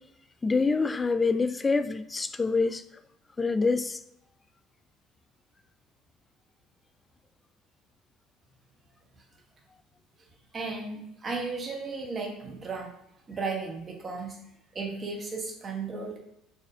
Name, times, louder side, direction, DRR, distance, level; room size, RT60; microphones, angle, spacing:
voice 1, 0.4-2.8 3.4-4.0, left 4 dB, 20° left, 0.3 m, -26 dB
voice 2, 10.5-12.9 13.3-14.4 14.7-16.2, right 4 dB, 35° right, 1.1 m, -35 dB
4.1 x 3.4 x 2.7 m
supercardioid pair, 80°, 0 cm